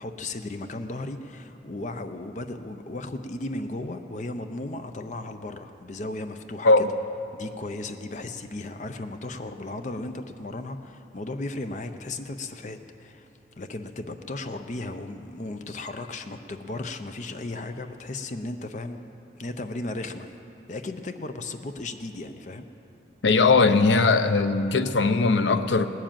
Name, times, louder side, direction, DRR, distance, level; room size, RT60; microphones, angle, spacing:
voice 1, 0.0-6.8 7.3-13.3 13.6-19.0 19.4-20.3 20.7-22.7, left 2 dB, 40° left, 7 dB, 0.5 m, -35 dB
voice 2, 23.2-25.9, left 3 dB, 80° left, 10 dB, 0.6 m, -19 dB
19.0 x 7.5 x 8.9 m, 2.9 s
head